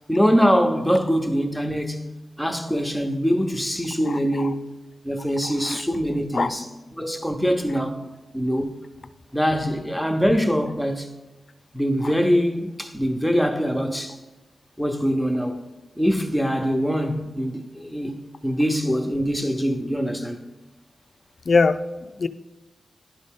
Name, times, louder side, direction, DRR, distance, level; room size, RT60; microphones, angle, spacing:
voice 1, 0.1-2.1 2.4-4.7 5.0-6.7 6.9-8.0 8.3-8.8 9.3-11.1 11.7-14.2 14.8-15.7 16.0-20.4, equal, ahead, 0.9 m, -23 dB
voice 2, 4.1-4.5 5.4-5.8 6.3-6.5 21.5-22.3, left 4 dB, 55° left, 0.4 m, -23 dB
11.0 x 4.0 x 3.7 m
cardioid pair, 65°, 0 cm